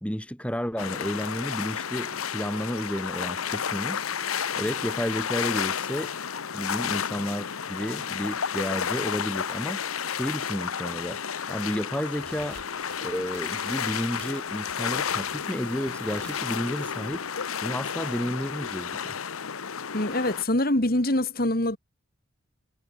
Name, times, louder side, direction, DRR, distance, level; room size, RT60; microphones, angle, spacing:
voice 1, 0.0-4.0 4.6-6.1 6.5-9.8 10.1-11.2 11.5-12.6 13.0-17.3 17.6-19.1, equal, 5° left, 1.8 m, -31 dB
sound 1, 0.8-20.4, left 7 dB, 90° left, 0.9 m, -32 dB
sound 2, 12.1-17.6, right 7 dB, 50° right, 8.0 m, -51 dB
voice 2, 19.9-21.8, left 1 dB, 45° left, 2.6 m, -24 dB
head